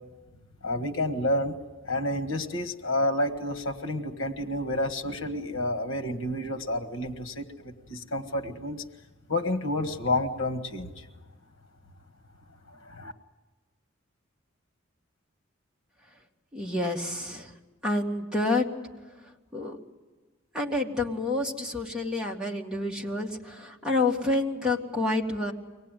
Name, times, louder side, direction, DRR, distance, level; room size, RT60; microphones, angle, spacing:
voice 1, 0.6-1.6 1.8-8.8 9.3-11.1 12.8-13.1, left 1 dB, 70° left, 6 dB, 1.7 m, -30 dB
voice 2, 16.5-17.5 17.8-18.7 19.2-19.8 20.5-25.5, left 2 dB, 5° right, -2 dB, 2.0 m, -28 dB
24.5 x 18.5 x 9.2 m, 1.3 s
head